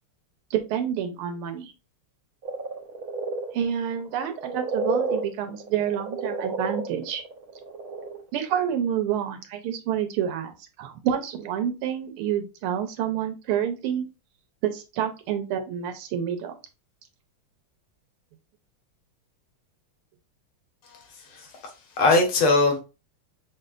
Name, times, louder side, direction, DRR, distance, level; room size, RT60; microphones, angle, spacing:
voice 1, 0.5-1.7 3.5-7.2 8.3-10.5 10.8-14.1 14.6-16.5, right 9 dB, 85° right, 1.6 m, -28 dB
sound 1, 2.4-8.2 8.5-8.6, right 2 dB, 70° right, 1.7 m, -31 dB
voice 2, 20.8-21.5 22.0-22.8, left 3 dB, 85° left, 2.0 m, -21 dB
6.4 x 2.1 x 2.4 m
omnidirectional pair, 2.4 m